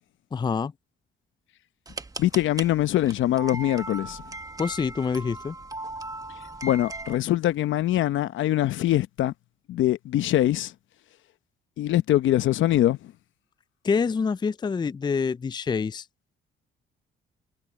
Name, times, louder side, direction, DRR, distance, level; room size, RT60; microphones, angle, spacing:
voice 1, 0.3-0.7 4.6-5.6 13.8-16.1, left 5 dB, 20° left, 0.4 m, -26 dB
sound 1, 1.9-7.2, right 2 dB, 15° right, 1.0 m, -38 dB
voice 2, 2.2-4.2 6.6-9.3 9.7-10.7 11.8-13.1, left 13 dB, 75° left, 0.9 m, -23 dB
cardioid pair, 90°, 20 cm